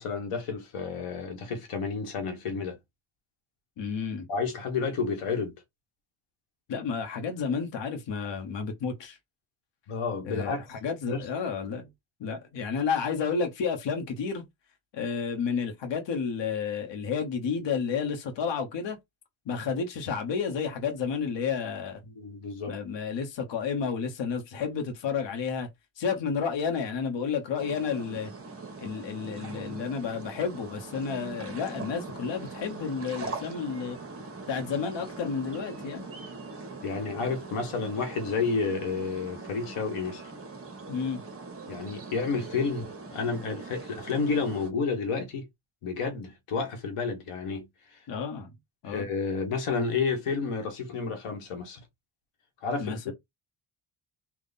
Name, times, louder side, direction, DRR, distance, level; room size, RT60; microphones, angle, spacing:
voice 1, 0.0-2.8 4.3-5.5 9.9-10.7 11.1-11.2 22.1-22.8 36.8-40.2 41.7-45.5 45.8-47.7 47.9-48.0 48.8-51.8 52.6-53.1, left 4 dB, 90° left, 1.3 m, -30 dB
voice 2, 3.8-4.3 6.7-9.2 10.2-11.9 12.2-14.5 14.9-19.0 19.5-22.0 22.7-25.7 26.0-28.3 28.8-34.0 34.5-36.1 40.9-41.2 48.1-48.5 48.8-49.1 52.8-53.0, left 6 dB, 60° left, 1.0 m, -31 dB
sound 1, 27.6-44.7, right 3 dB, 25° right, 1.1 m, -42 dB
3.6 x 2.4 x 4.0 m
cardioid pair, 110°, 50 cm